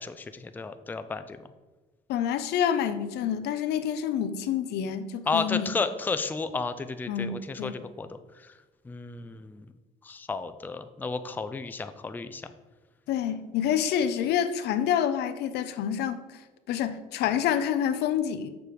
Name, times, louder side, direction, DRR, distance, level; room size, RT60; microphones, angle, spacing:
voice 1, 0.0-1.4 5.3-8.5 8.9-9.6 10.0-12.5, left 4 dB, 10° left, 10 dB, 0.4 m, -33 dB
voice 2, 2.1-5.7 7.1-7.7 13.1-16.2 16.7-18.5, left 9 dB, 80° left, 11 dB, 0.6 m, -27 dB
6.9 x 4.6 x 5.0 m, 1.2 s
cardioid pair, 110°, 17 cm